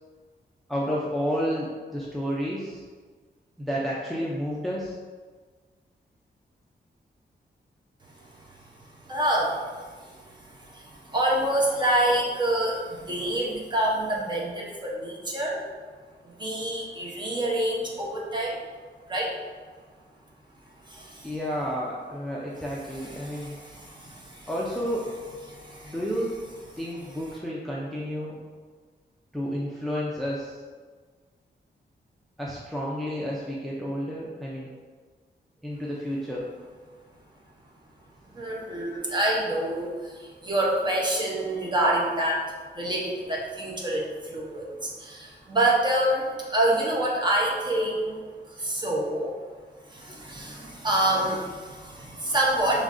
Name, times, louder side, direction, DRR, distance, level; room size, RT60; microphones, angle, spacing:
voice 1, 0.7-2.8 3.6-4.9 21.2-23.6 24.5-25.0 25.8-26.3 26.8-28.4 29.3-30.6 32.4-34.7 35.6-36.5, equal, ahead, -5 dB, 0.4 m, -31 dB
voice 2, 9.1-15.6 16.2-18.6 19.1-19.3 20.9-21.3 22.9-24.5 25.5-26.0 38.3-42.4 42.7-48.3 48.5-49.3 49.8-52.8, right 1 dB, 25° right, -3 dB, 0.7 m, -27 dB
5.0 x 3.2 x 2.5 m, 1.5 s
wide cardioid pair, 170°, 18 cm